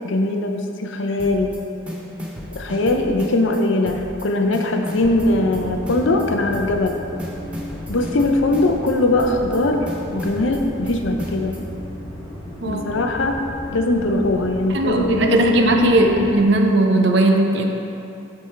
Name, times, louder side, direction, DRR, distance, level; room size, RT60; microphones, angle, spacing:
voice 1, 0.0-1.5 2.5-7.0 7.9-9.9 10.1-11.5 12.6-13.4 13.7-15.7, left 2 dB, 65° left, 3 dB, 0.6 m, -20 dB
sound 1, 1.2-1.6 1.9-3.6 3.9-4.2 4.5-6.2 6.5-6.9 7.2-8.9 9.2-9.6 9.9-11.6, equal, 5° right, 0.7 m, -34 dB
sound 2, 4.9-16.4, equal, 10° left, 1.4 m, -35 dB
voice 2, 14.7-17.7, right 1 dB, 55° right, 3 dB, 0.6 m, -17 dB
9.2 x 3.6 x 4.5 m, 2.8 s
head